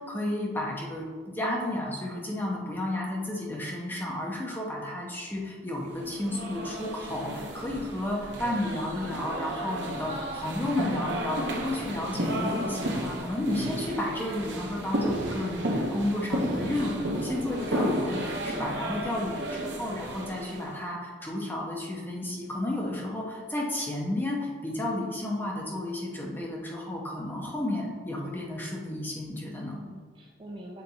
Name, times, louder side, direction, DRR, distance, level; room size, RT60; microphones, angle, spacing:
voice 1, 0.0-29.8, left 1 dB, 10° left, -2 dB, 0.8 m, -32 dB
sound 1, 6.0-20.7, right 1 dB, 70° right, 0.9 m, -33 dB
voice 2, 18.4-19.2 29.7-30.8, equal, 25° right, -1 dB, 0.6 m, -44 dB
6.9 x 3.5 x 4.0 m, 1.6 s
head